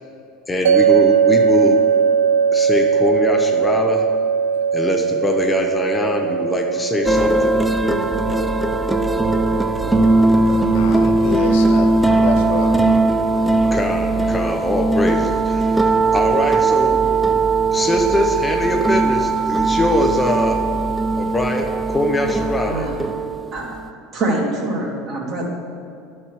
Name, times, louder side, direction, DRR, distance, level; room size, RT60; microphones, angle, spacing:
voice 1, 0.5-1.8 2.5-4.1 4.7-7.6 13.7-17.0 17.7-20.7 21.2-22.9, left 2 dB, 15° left, 3 dB, 0.8 m, -22 dB
sound 1, 0.7-13.8, right 7 dB, 85° right, 0.6 m, -21 dB
sound 2, 7.1-23.9, right 3 dB, 5° right, 0.5 m, -19 dB
voice 2, 10.4-12.8, left 6 dB, 75° left, 4 dB, 0.8 m, -28 dB
voice 3, 22.7-23.1 23.5-23.7 24.1-25.4, right 2 dB, 45° right, -2 dB, 2.2 m, -24 dB
11.5 x 4.4 x 4.7 m, 2.4 s
hypercardioid pair, 85°, 0 cm